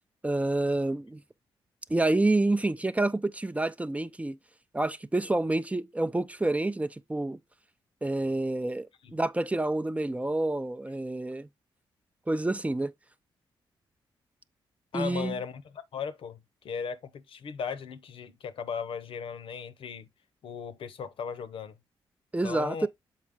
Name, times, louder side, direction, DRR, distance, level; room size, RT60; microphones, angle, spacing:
voice 1, 0.2-1.2 1.9-4.4 4.7-7.4 8.0-11.5 12.3-12.9 14.9-15.4 22.3-22.9, right 2 dB, 15° right, 0.6 m, -28 dB
voice 2, 14.9-20.1 20.4-21.8 22.4-22.9, left 6 dB, 70° left, 0.9 m, -37 dB
7.3 x 4.5 x 3.6 m
cardioid pair, 70°, 9 cm